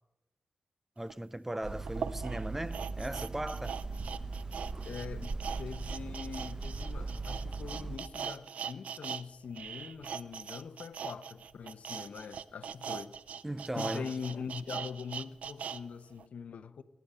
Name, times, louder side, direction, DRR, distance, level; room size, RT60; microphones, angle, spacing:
voice 1, 1.0-3.8 13.4-14.1, right 1 dB, 15° right, 0.5 m, -37 dB
sound 1, 1.1-1.2 1.9-9.2 9.5-15.8 16.2-16.3, right 7 dB, 85° right, 0.4 m, -41 dB
Hammer, 1.6-8.0, right 3 dB, 35° right, 1.0 m, -39 dB
sound 2, 2.7-3.4 3.7-6.2, right 4 dB, 50° right, 1.3 m, -60 dB
voice 2, 4.8-13.2 13.7-16.8, left 6 dB, 80° left, 0.7 m, -43 dB
19.5 x 10.5 x 5.5 m
cardioid pair, 65°, 2 cm